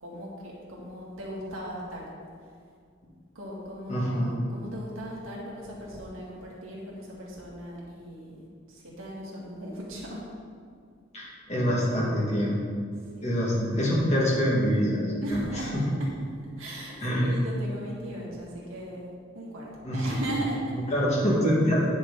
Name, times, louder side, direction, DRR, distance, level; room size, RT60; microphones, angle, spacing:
voice 1, 0.0-2.1 3.3-8.4 8.7-10.2 13.2-13.4 15.2-16.1 16.6-19.1 19.3-20.8, right 1 dB, 85° right, -5 dB, 2.3 m, -37 dB
voice 2, 3.9-4.3 11.1-12.6 13.2-15.4 15.7-15.8 17.0-17.4 19.8-20.2 20.9-21.9, equal, 35° left, -5 dB, 2.0 m, -25 dB
9.8 x 6.4 x 3.9 m, 2.2 s
head